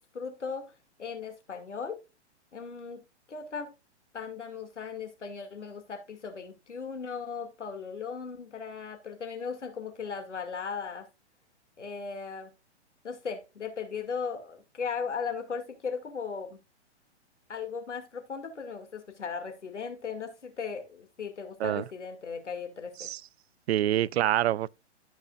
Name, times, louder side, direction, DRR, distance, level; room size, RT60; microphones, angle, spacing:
voice 1, 0.1-0.7 1.0-2.0 2.5-3.0 3.3-3.7 4.1-11.1 11.8-12.5 13.0-16.6 17.5-23.1, left 5 dB, 85° left, 2.5 m, -37 dB
voice 2, 23.7-24.7, right 12 dB, 65° right, 0.5 m, -26 dB
13.5 x 5.9 x 2.5 m
hypercardioid pair, 125°, 35 cm